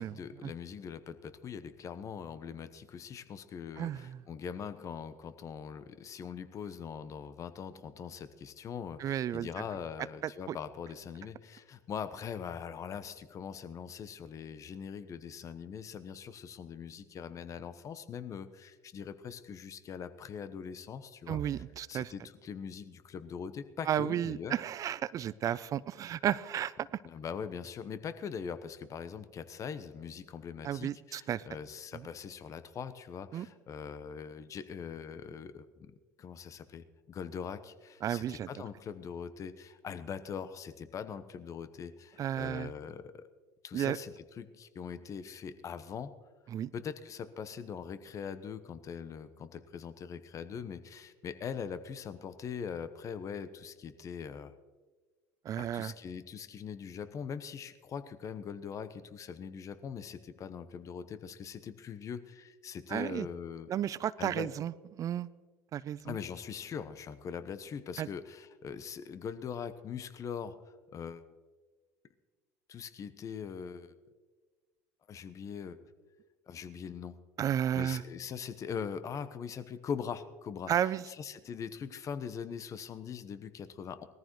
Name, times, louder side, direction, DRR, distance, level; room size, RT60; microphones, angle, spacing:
voice 1, 0.0-21.4 21.9-24.6 27.0-35.9 36.2-43.3 43.6-46.1 46.7-54.5 55.6-63.7 64.2-64.5 66.0-70.6 70.9-71.2 72.7-73.9 75.1-75.8 76.5-77.1 77.7-80.7 81.1-84.0, left 7 dB, 40° left, 12 dB, 1.0 m, -42 dB
voice 2, 3.8-4.2 9.0-9.5 10.2-10.6 21.3-22.1 23.9-26.9 30.6-31.4 33.3-33.5 38.0-38.5 42.2-42.7 43.7-44.0 46.5-46.7 55.4-55.9 62.9-63.3 63.7-65.3 65.7-66.2 68.0-68.1 77.4-78.0 80.7-81.0, right 10 dB, 45° right, 18 dB, 0.5 m, -33 dB
19.5 x 14.0 x 3.1 m, 1.3 s
hypercardioid pair, 70°, 8 cm